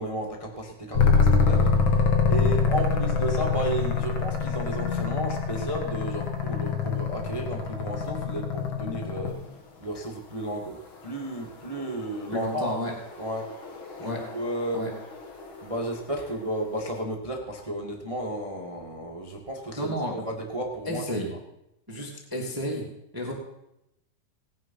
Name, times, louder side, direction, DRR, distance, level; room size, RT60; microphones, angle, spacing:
voice 1, 0.0-9.3 9.8-10.8 11.0-13.5 14.0-14.8 15.6-21.0, right 1 dB, 45° right, 1 dB, 0.4 m, -33 dB
sound 1, 0.9-9.5 11.7-16.3, left 5 dB, 50° left, 1.6 m, -26 dB
voice 2, 12.3-12.9 14.0-14.2 14.7-14.9 19.8-20.3 20.9-21.3 21.9-22.8 23.1-23.3, equal, 5° right, -1 dB, 2.1 m, -31 dB
18.5 x 9.7 x 5.8 m, 0.85 s
omnidirectional pair, 4.5 m